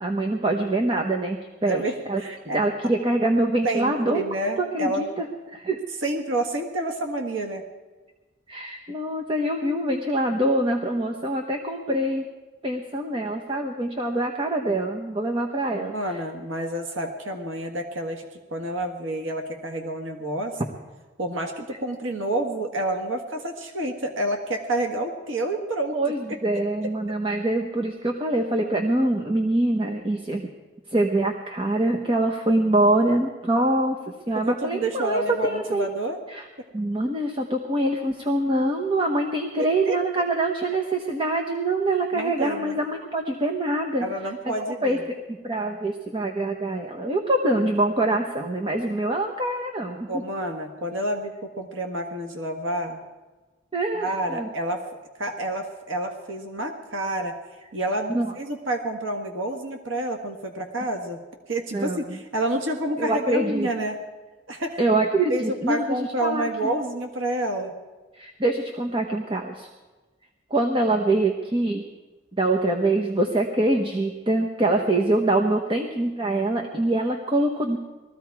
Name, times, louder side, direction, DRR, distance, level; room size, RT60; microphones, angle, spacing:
voice 1, 0.0-2.2 2.5-4.2 4.6-5.8 8.5-12.2 12.6-15.9 25.9-30.5 30.9-34.0 34.3-35.9 36.3-36.4 36.7-44.1 44.8-45.2 45.4-50.2 53.7-54.5 58.1-58.3 61.7-62.2 63.0-63.7 64.8-66.7 68.1-69.7 70.5-71.9 72.3-77.8, right 2 dB, 25° right, 2 dB, 1.0 m, -24 dB
voice 2, 1.7-2.6 3.6-5.1 6.0-7.6 15.7-18.2 18.5-20.6 21.2-26.0 26.5-26.9 34.3-36.2 39.6-40.0 42.1-42.8 44.0-45.0 50.1-53.0 53.9-54.8 55.2-57.3 57.7-61.2 61.5-64.0 64.5-64.8 65.3-67.7, right 1 dB, 85° right, 4 dB, 1.6 m, -29 dB
20.5 x 14.5 x 4.7 m, 1.2 s
head